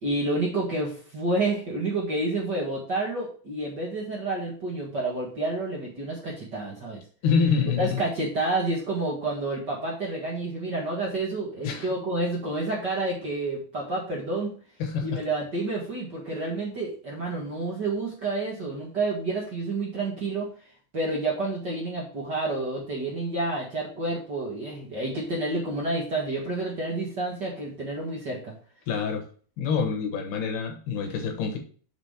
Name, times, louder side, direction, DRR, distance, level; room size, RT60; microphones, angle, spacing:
voice 1, 0.0-7.0 7.8-14.5 15.0-20.5 20.9-28.5, right 2 dB, 70° right, -3 dB, 1.0 m, -29 dB
voice 2, 7.2-8.0 11.6-11.9 14.8-15.2 28.9-29.2 29.6-31.6, left 6 dB, 70° left, 5 dB, 3.1 m, -26 dB
7.2 x 3.8 x 6.3 m, 0.43 s
omnidirectional pair, 4.8 m